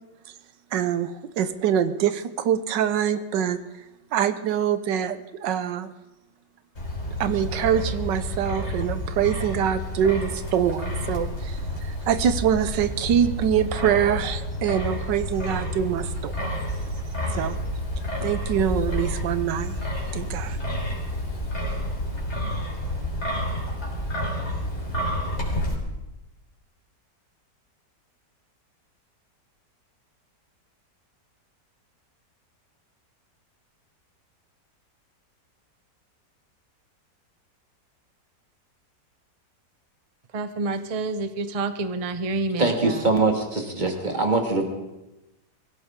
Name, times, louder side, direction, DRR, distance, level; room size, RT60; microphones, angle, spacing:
voice 1, 0.7-3.6 4.1-5.9 7.2-11.6 11.9-16.5 17.3-17.6 18.2-19.8 20.1-20.6, right 9 dB, 85° right, 1.5 m, -24 dB
Wind, 6.8-25.7, left 1 dB, 40° left, 4.1 m, -30 dB
voice 2, 40.3-43.0, right 3 dB, 55° right, 0.4 m, -28 dB
voice 3, 42.6-44.6, right 3 dB, 25° right, 2.2 m, -23 dB
23.0 x 16.0 x 3.7 m
omnidirectional pair, 1.9 m